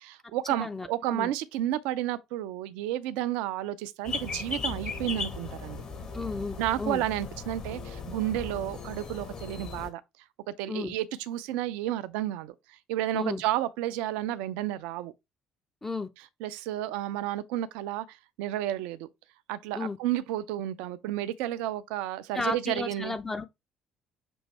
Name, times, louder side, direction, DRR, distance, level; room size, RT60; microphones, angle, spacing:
voice 1, 0.0-5.8 6.6-10.0 10.5-15.1 16.4-19.1 19.5-23.2, right 13 dB, 65° right, 0.4 m, -31 dB
voice 2, 0.6-1.3 6.1-7.0 10.7-10.9 13.1-13.4 15.8-16.1 19.7-20.0 22.3-23.4, left 3 dB, 20° left, 0.6 m, -33 dB
sound 1, 4.0-9.9, left 4 dB, 45° left, 1.3 m, -37 dB
6.1 x 2.6 x 3.2 m
figure-of-eight pair, 50°, 2 cm